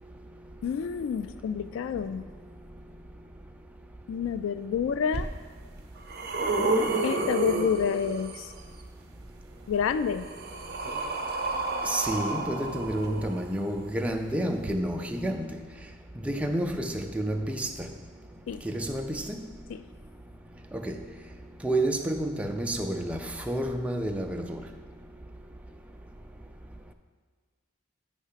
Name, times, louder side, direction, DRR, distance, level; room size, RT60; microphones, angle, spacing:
voice 1, 0.6-2.3 4.1-5.3 7.0-8.5 9.7-10.3 18.5-18.6 19.7-19.9, left 7 dB, 85° left, 13 dB, 0.3 m, -28 dB
sound 1, 5.1-5.2 5.8-8.5 9.7-13.6 14.6-14.7, right 2 dB, 50° right, 0.7 m, -30 dB
voice 2, 11.9-15.5 16.3-17.7 18.6-19.2 20.7-20.9 21.6-23.2 23.5-24.6, right 1 dB, 5° right, 4 dB, 0.4 m, -29 dB
9.1 x 3.2 x 5.7 m, 1.5 s
head